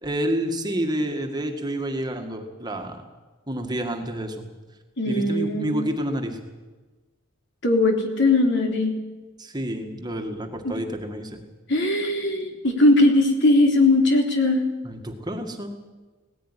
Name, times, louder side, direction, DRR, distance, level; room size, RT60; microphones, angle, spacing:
voice 1, 0.0-3.0 3.5-4.5 5.1-6.4 9.4-11.4 14.8-15.7, right 1 dB, 20° right, 4 dB, 1.9 m, -29 dB
voice 2, 5.0-5.8 7.6-9.0 11.7-14.6, left 2 dB, 55° left, 3 dB, 3.4 m, -19 dB
18.5 x 15.5 x 9.9 m, 1.3 s
head